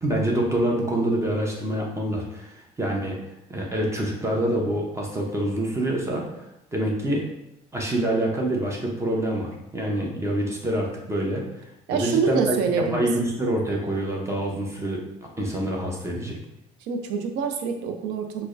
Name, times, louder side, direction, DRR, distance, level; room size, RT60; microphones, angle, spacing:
voice 1, 0.0-3.2 3.5-6.3 6.7-7.3 7.7-11.4 11.9-15.0 15.4-16.4, right 1 dB, 15° right, -1 dB, 0.7 m, -26 dB
voice 2, 11.9-13.1 16.9-18.5, right 6 dB, 90° right, 5 dB, 0.5 m, -25 dB
4.5 x 2.1 x 2.5 m, 0.86 s
cardioid pair, 110°, 17 cm